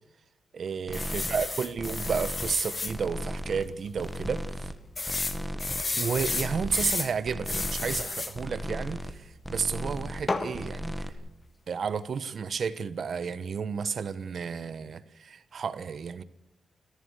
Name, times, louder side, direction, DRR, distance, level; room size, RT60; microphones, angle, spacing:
voice 1, 0.5-4.7 5.9-11.1 11.7-16.2, right 6 dB, 50° right, 1.1 m, -32 dB
sound 1, 0.9-2.9 3.5-3.6 3.9-4.0 5.0-7.1 7.4-8.3 10.3-10.5, left 3 dB, 25° left, 1.8 m, -32 dB
sound 2, 0.9-1.5 1.8-2.6 2.9-3.7 4.0-4.8 5.0-5.8 6.1-7.0 7.2-8.0 8.3-9.2 9.4-10.3 10.5-11.1, equal, ahead, 1.8 m, -36 dB
28.5 x 15.5 x 6.6 m
wide cardioid pair, 155°, 0 cm